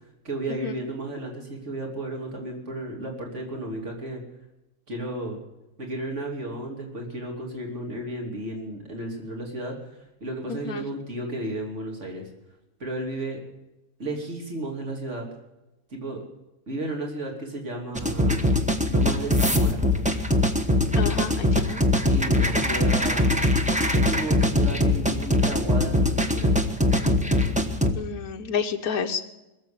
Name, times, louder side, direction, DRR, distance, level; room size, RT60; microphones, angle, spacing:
voice 1, 0.2-4.2 4.9-5.4 5.8-9.7 10.2-12.3 12.8-13.4 14.0-15.3 15.9-16.2 16.7-18.4 18.9-19.8 22.0-23.3 23.9-26.5, right 1 dB, 55° right, 1 dB, 3.3 m, -33 dB
voice 2, 10.5-10.9 21.0-21.8 28.0-29.2, left 6 dB, 90° left, 4 dB, 1.5 m, -30 dB
sound 1, 17.9-27.9, left 1 dB, 5° right, 1.0 m, -22 dB
21.5 x 7.4 x 8.4 m, 0.97 s
omnidirectional pair, 1.5 m